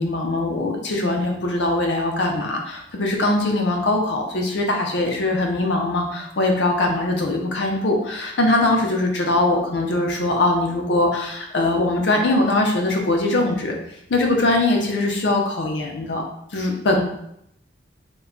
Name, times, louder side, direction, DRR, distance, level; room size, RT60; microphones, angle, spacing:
voice 1, 0.0-13.8 14.1-16.2 16.5-17.0, left 2 dB, 65° left, 2 dB, 0.5 m, -21 dB
2.2 x 2.2 x 3.6 m, 0.74 s
head